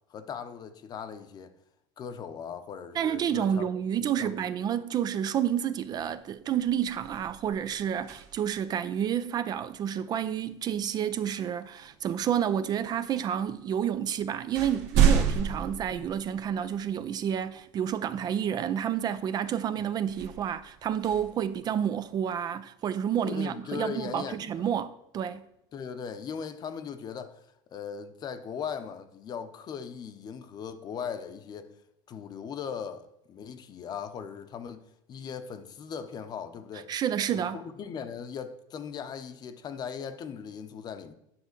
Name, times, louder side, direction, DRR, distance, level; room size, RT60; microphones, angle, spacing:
voice 1, 0.1-1.5 2.0-3.7 4.2-4.5 15.9-16.1 23.2-24.7 25.7-27.4 27.7-31.7 32.1-34.8 35.1-36.9 37.3-41.1, left 7 dB, 40° left, 0.8 m, -39 dB
voice 2, 2.9-25.4 36.9-37.6, right 9 dB, 35° right, 0.4 m, -30 dB
sound 1, 6.0-6.2 6.6-8.7 10.8-11.0 11.8-12.6 13.5-13.6 14.0-16.8 17.3-17.4 20.0-22.2, right 7 dB, 75° right, 1.4 m, -30 dB
9.7 x 3.6 x 6.7 m
supercardioid pair, 120°, 11 cm